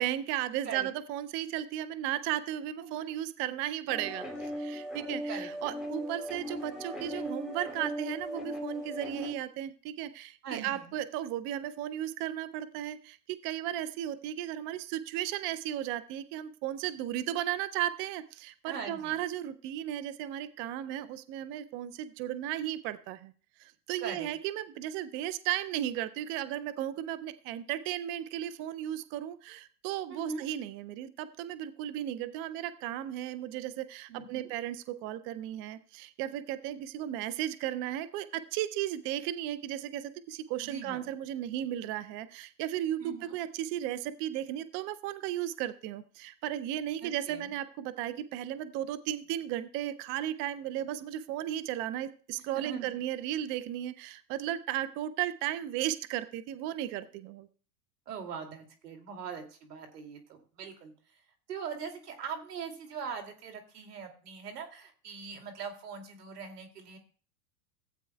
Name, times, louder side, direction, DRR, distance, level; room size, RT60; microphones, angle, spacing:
voice 1, 0.0-23.3 23.6-57.5, right 12 dB, 30° right, 14 dB, 0.4 m, -35 dB
voice 2, 2.8-3.1 5.3-5.5 10.4-10.9 18.7-19.2 24.0-24.3 30.1-30.4 34.1-34.5 40.6-41.1 43.0-43.4 47.0-47.5 52.5-52.9 58.1-60.9 61.5-67.0, right 6 dB, 80° right, 4 dB, 2.5 m, -41 dB
sound 1, 3.9-9.3, equal, ahead, 2.4 m, -38 dB
16.0 x 8.7 x 2.2 m, 0.40 s
hypercardioid pair, 115°, 46 cm